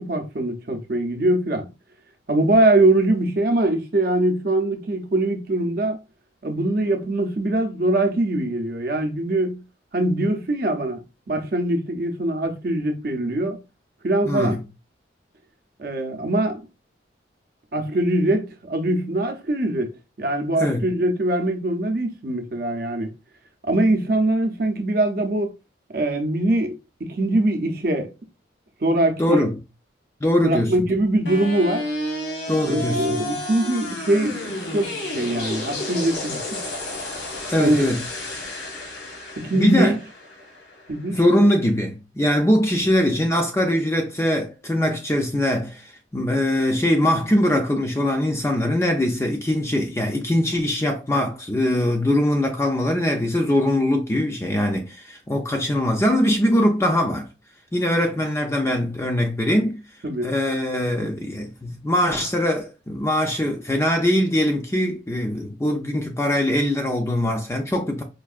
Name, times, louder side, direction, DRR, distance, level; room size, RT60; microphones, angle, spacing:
voice 1, 0.0-1.7 2.3-6.0 6.4-9.6 9.9-11.0 11.3-13.6 14.0-14.6 15.8-16.6 17.7-19.9 20.2-23.1 23.6-25.5 25.9-28.1 28.8-29.4 30.4-31.9 32.7-36.6 37.6-37.9 39.4-39.9 40.9-41.2 60.0-60.3, right 1 dB, 50° right, 0.6 m, -22 dB
voice 2, 14.2-14.6 20.6-20.9 29.2-29.6 30.2-30.7 32.5-33.2 37.5-38.1 39.5-40.0 41.1-57.3 57.7-59.8 60.2-68.0, left 1 dB, 15° left, 0.4 m, -22 dB
sound 1, 31.3-41.3, left 2 dB, 75° left, 1.3 m, -31 dB
4.5 x 2.6 x 2.4 m
head